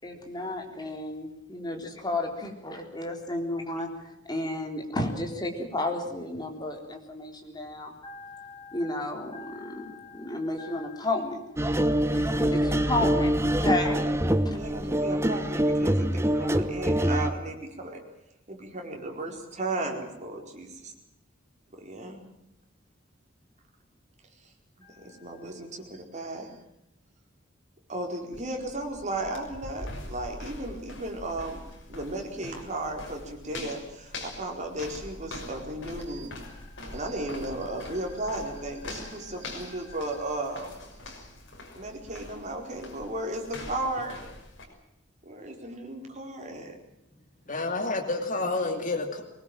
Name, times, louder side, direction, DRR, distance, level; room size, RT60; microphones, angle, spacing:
voice 1, 0.0-3.9 4.3-11.4 11.8-14.1 14.4-14.6 24.8-25.5 36.6-37.0 39.2-39.4, left 2 dB, 20° left, 3 dB, 3.8 m, -33 dB
sound 1, 11.6-17.3, right 1 dB, 15° right, 1.1 m, -25 dB
voice 2, 14.5-18.0 18.5-20.9 21.8-22.2 25.0-26.5 27.9-31.6 31.9-36.3 36.9-40.8 41.7-44.3 45.2-46.7, right 2 dB, 40° right, 2 dB, 4.6 m, -35 dB
sound 2, 28.3-44.7, left 2 dB, 65° left, 6.1 m, -43 dB
voice 3, 47.5-49.2, left 3 dB, 40° left, 3 dB, 2.8 m, -29 dB
23.5 x 20.0 x 7.6 m, 0.85 s
head